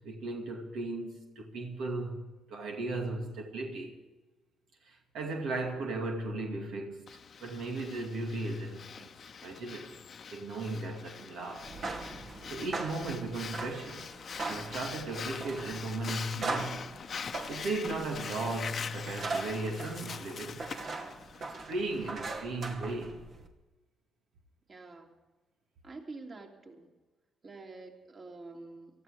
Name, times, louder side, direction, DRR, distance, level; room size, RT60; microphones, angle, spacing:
voice 1, 0.0-4.0 4.8-7.1 7.4-9.1 9.4-10.0 10.3-11.7 12.5-14.1 14.4-16.8 17.5-20.7 21.6-23.2, right 2 dB, 80° right, 2.4 m, -36 dB
Breathing, 7.1-22.1, left 6 dB, 50° left, 0.9 m, -43 dB
sound 1, 11.6-23.5, right 3 dB, 55° right, 2.4 m, -40 dB
voice 2, 24.7-25.2 25.8-26.9 27.4-29.0, right 3 dB, 40° right, 3.3 m, -47 dB
18.5 x 14.0 x 4.9 m
cardioid pair, 90°, 0 cm